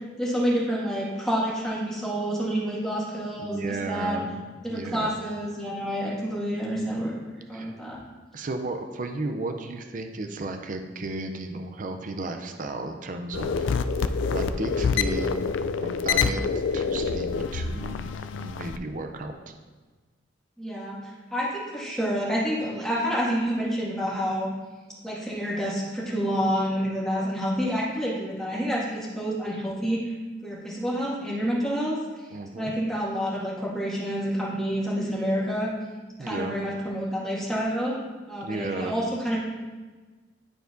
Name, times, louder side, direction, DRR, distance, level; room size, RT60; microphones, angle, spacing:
voice 1, 0.2-4.2 4.6-8.0 20.6-24.5 25.0-30.1 30.4-32.3 32.6-35.7 36.2-38.0 38.3-39.4, equal, 5° left, -7 dB, 1.9 m, -28 dB
voice 2, 3.4-4.3 4.7-5.2 7.5-7.7 8.3-13.7 14.3-15.3 15.8-16.4 16.7-18.1 18.4-19.5 32.3-32.7 36.2-36.6 38.4-39.0, right 2 dB, 45° right, 6 dB, 0.5 m, -33 dB
sound 1, 13.3-18.8, left 5 dB, 90° left, 0.4 m, -27 dB
11.5 x 4.6 x 2.6 m, 1.4 s
head